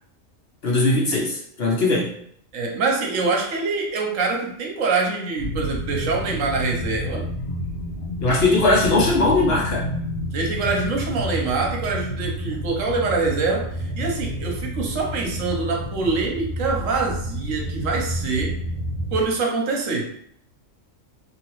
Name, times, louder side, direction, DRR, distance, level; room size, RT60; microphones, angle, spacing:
voice 1, 0.6-2.2 8.2-9.9, left 2 dB, 55° left, -3 dB, 0.8 m, -20 dB
voice 2, 2.5-7.2 10.3-18.6 19.1-20.1, right 4 dB, 70° right, 0 dB, 1.1 m, -25 dB
sound 1, 5.4-19.2, equal, 85° left, 1.1 m, -29 dB
2.8 x 2.7 x 2.9 m, 0.66 s
omnidirectional pair, 1.4 m